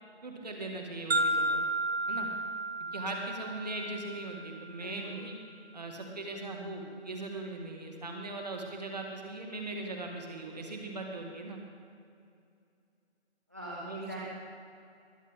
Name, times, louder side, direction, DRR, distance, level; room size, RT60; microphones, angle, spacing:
voice 1, 0.2-1.6 2.1-2.3 2.9-5.4 5.7-11.6 13.8-14.2, right 2 dB, 40° right, 1 dB, 1.8 m, -39 dB
sound 1, 1.1-5.1, right 1 dB, 65° right, 1.3 m, -33 dB
voice 2, 4.8-5.2 13.5-14.2, right 1 dB, 15° right, -5 dB, 0.8 m, -42 dB
20.5 x 10.0 x 3.6 m, 2.5 s
hypercardioid pair, 175°, 34 cm